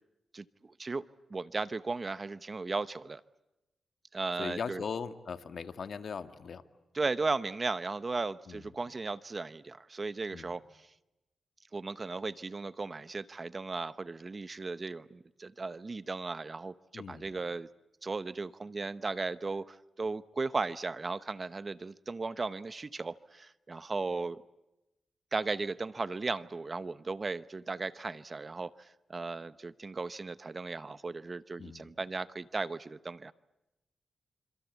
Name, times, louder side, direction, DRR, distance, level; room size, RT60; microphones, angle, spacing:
voice 1, 1.3-3.2 4.1-4.8 6.9-10.9 11.7-17.7 18.0-24.4 25.3-33.3, right 3 dB, 40° right, 15 dB, 0.9 m, -36 dB
voice 2, 4.4-6.6 8.5-8.7 10.3-10.5 16.9-17.4 31.6-31.9, left 6 dB, 65° left, 9 dB, 1.9 m, -39 dB
26.5 x 26.5 x 8.3 m, 0.95 s
cardioid pair, 60°, 0 cm